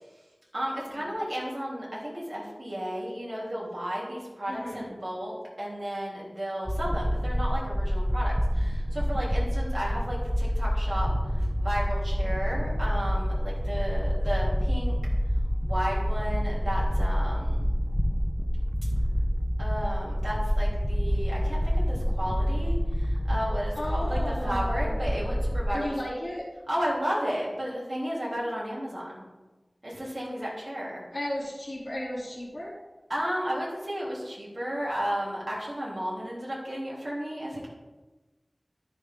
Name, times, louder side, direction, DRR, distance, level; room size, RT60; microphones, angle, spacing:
voice 1, 0.5-15.0 15.6-17.7 19.6-26.0 26.7-29.3 29.8-31.1 33.1-37.7, equal, 55° right, -6 dB, 3.0 m, -33 dB
voice 2, 4.5-4.9 23.7-25.2 25.7-26.5 31.1-32.7, left 1 dB, 50° left, -7 dB, 3.0 m, -34 dB
sound 1, 6.7-25.7, equal, 5° left, 0.9 m, -27 dB
13.5 x 6.2 x 3.7 m, 1.2 s
wide cardioid pair, 55°, 0 cm